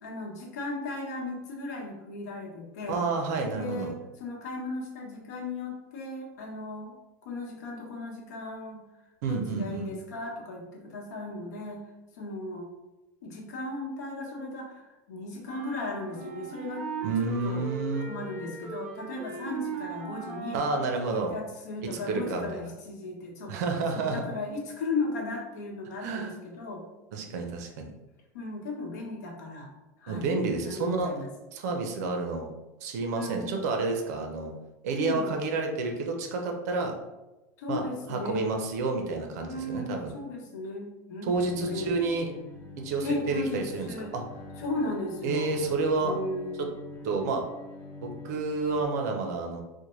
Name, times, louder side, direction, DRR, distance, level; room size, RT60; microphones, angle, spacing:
voice 1, 0.0-3.0 3.6-6.9 7.2-8.8 9.3-11.8 12.1-12.7 13.2-16.9 17.2-17.6 18.0-20.6 21.1-23.6 23.9-26.8 28.3-29.7 30.0-30.3 30.7-31.3 33.1-33.6 34.9-35.4 37.6-38.6 39.4-41.9 43.0-44.1 44.6-45.6 46.0-46.7, left 2 dB, 85° left, 0 dB, 1.0 m, -36 dB
voice 2, 2.9-3.9 9.2-9.9 17.0-18.1 20.5-21.3 21.8-22.7 23.5-24.2 26.0-26.3 27.1-27.9 30.1-31.1 31.5-32.5 32.8-34.5 34.8-36.9 37.7-40.1 41.3-42.3 42.8-44.2 45.2-46.2 46.6-46.7 47.0-47.4 48.0-49.6, right 3 dB, 70° right, 3 dB, 0.6 m, -30 dB
sound 1, 15.4-21.2, right 5 dB, 20° right, 0.7 m, -39 dB
Bowed string instrument, 41.3-48.8, left 2 dB, 20° left, 0.4 m, -45 dB
4.3 x 2.1 x 3.1 m, 1.1 s
supercardioid pair, 155°, 9 cm